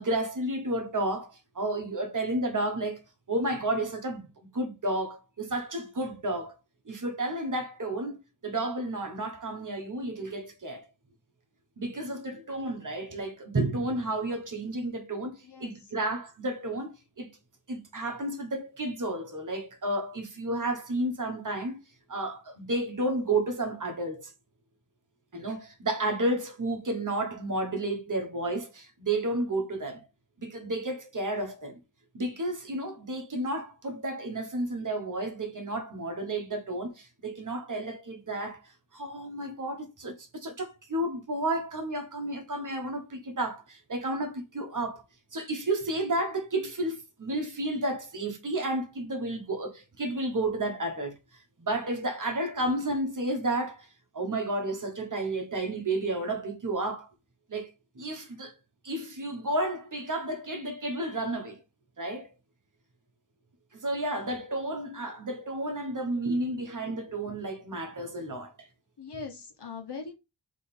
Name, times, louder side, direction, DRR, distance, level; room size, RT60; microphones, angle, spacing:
voice 1, 0.0-3.0 3.3-4.3 4.5-6.5 6.9-10.9 11.8-17.3 17.7-21.8 22.1-24.3 25.3-30.0 30.4-31.8 32.1-45.0 45.3-51.1 51.6-53.9 54.1-57.1 57.5-58.5 58.8-61.6 62.0-62.3 63.8-68.7, right 1 dB, 40° right, 1.2 m, -32 dB
voice 2, 15.4-15.9 69.0-70.1, left 4 dB, 60° left, 1.3 m, -41 dB
3.7 x 3.2 x 4.3 m
wide cardioid pair, 90°, 45 cm